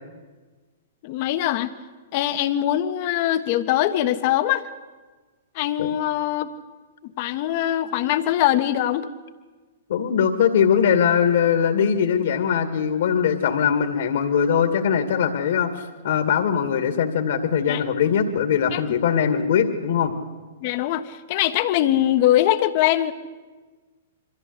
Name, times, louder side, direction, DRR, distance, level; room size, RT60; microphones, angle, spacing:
voice 1, 1.0-1.7 2.1-4.7 5.5-6.5 7.2-9.1 17.7-17.8 18.7-18.8 20.6-23.1, left 13 dB, 50° left, 10 dB, 1.3 m, -22 dB
voice 2, 9.9-20.1, left 7 dB, 65° left, 8 dB, 2.4 m, -21 dB
23.0 x 15.0 x 8.3 m, 1.3 s
hypercardioid pair, 125°, 0 cm